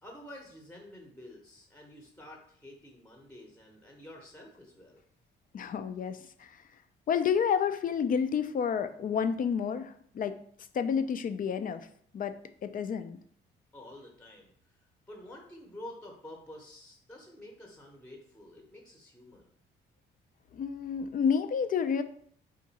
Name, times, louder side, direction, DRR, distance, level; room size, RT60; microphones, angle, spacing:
voice 1, 0.0-5.0 13.7-14.8 15.1-19.5, left 1 dB, 5° left, 1 dB, 0.8 m, -49 dB
voice 2, 5.5-6.5 7.1-10.4 10.7-11.9 12.1-12.3 12.6-13.2 20.5-22.0, left 7 dB, 45° left, 10 dB, 0.4 m, -30 dB
3.8 x 2.6 x 4.0 m, 0.62 s
cardioid pair, 90°, 20 cm